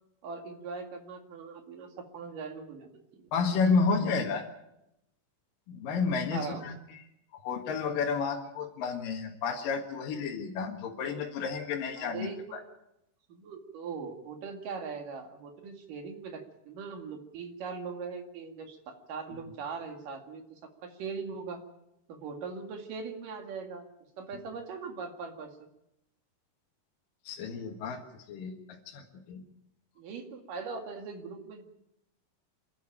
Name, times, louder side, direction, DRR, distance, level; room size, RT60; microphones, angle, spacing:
voice 1, 0.2-1.9 2.1-3.3 6.3-6.6 12.0-12.6 13.3-21.6 22.1-23.9 24.2-25.5 30.0-31.6, right 5 dB, 55° right, 4 dB, 3.4 m, -40 dB
voice 2, 3.3-4.5 5.7-6.8 7.3-12.6 27.2-29.4, left 5 dB, 60° left, 1 dB, 3.0 m, -31 dB
27.5 x 11.5 x 9.0 m, 0.86 s
omnidirectional pair, 5.0 m